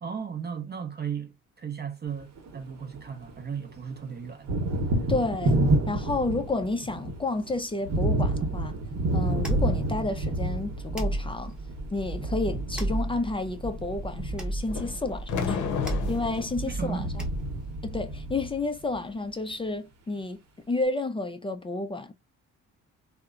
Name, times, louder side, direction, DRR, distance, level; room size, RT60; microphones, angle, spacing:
voice 1, 0.0-4.5 16.7-17.1, right 7 dB, 35° right, 0.6 m, -35 dB
Thunder, 2.2-3.4 3.7-19.0, right 2 dB, 60° right, 1.0 m, -30 dB
voice 2, 5.1-5.6 5.9-8.8 9.1-11.5 11.9-15.7 16.1-17.2 17.8-20.4 20.7-22.1, left 2 dB, 20° left, 0.4 m, -31 dB
sound 1, 9.2-17.8, right 1 dB, 5° right, 0.8 m, -35 dB
sound 2, 14.7-16.5, left 6 dB, 80° left, 0.7 m, -31 dB
2.8 x 2.1 x 2.3 m
cardioid pair, 90°, 30 cm